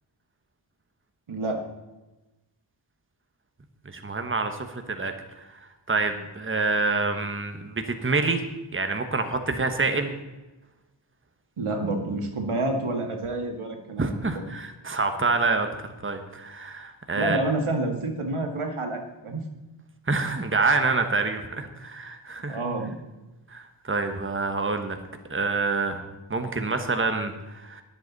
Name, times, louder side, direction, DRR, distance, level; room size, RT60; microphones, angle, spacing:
voice 1, 1.3-1.6 11.6-14.4 17.2-19.4 22.5-23.0, right 2 dB, 80° right, 3 dB, 1.8 m, -28 dB
voice 2, 3.8-8.5 8.7-10.1 14.0-17.4 20.1-22.6 23.5-25.0 25.3-26.0 26.3-27.8, right 3 dB, 25° right, 6 dB, 1.2 m, -27 dB
21.0 x 7.8 x 4.1 m, 1.1 s
wide cardioid pair, 55°, 49 cm